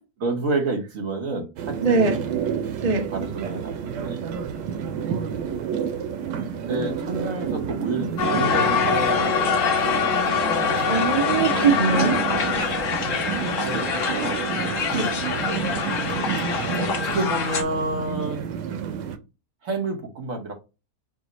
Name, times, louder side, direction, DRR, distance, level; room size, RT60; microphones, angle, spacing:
voice 1, 0.2-2.2 2.9-4.2 6.3-9.5 13.2-14.4 14.9-15.1 16.5-18.5 19.6-20.5, right 2 dB, 55° right, 1.4 m, -29 dB
sound 1, 1.6-19.2, right 7 dB, 90° right, 1.3 m, -30 dB
voice 2, 1.8-2.2 2.8-3.0 10.5-10.6 10.9-12.1 14.9-15.1, right 4 dB, 30° right, 0.8 m, -21 dB
Crowd, 8.2-17.6, left 5 dB, 55° left, 1.1 m, -24 dB
5.0 x 2.1 x 3.9 m
omnidirectional pair, 1.8 m